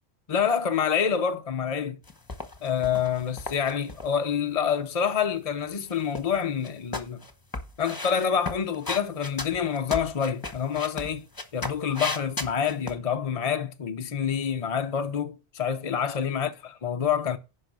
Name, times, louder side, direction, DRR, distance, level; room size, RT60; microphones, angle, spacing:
voice 1, 0.3-2.0 2.6-7.2 7.8-11.3 11.5-17.4, left 7 dB, 45° left, 0.6 m, -27 dB
sound 1, 2.1-4.1 5.7-6.4 6.6-12.9, left 2 dB, 20° left, 1.1 m, -35 dB
10.5 x 5.4 x 5.3 m
omnidirectional pair, 1.2 m